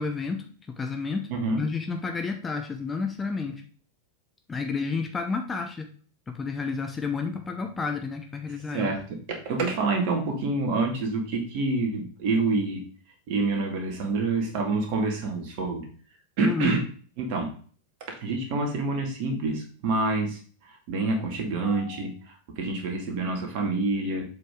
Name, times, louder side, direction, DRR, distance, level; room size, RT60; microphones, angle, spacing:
voice 1, 0.0-1.3 1.6-3.6 4.5-5.9 6.3-8.9 16.4-16.8, left 4 dB, 15° left, 4 dB, 0.9 m, -30 dB
voice 2, 1.3-1.6 8.7-12.8 13.3-15.9 16.4-16.8 17.2-17.5 18.2-20.4 20.7-24.3, right 3 dB, 45° right, 2 dB, 2.2 m, -27 dB
7.4 x 5.3 x 3.8 m, 0.42 s
figure-of-eight pair, 90°, 0 cm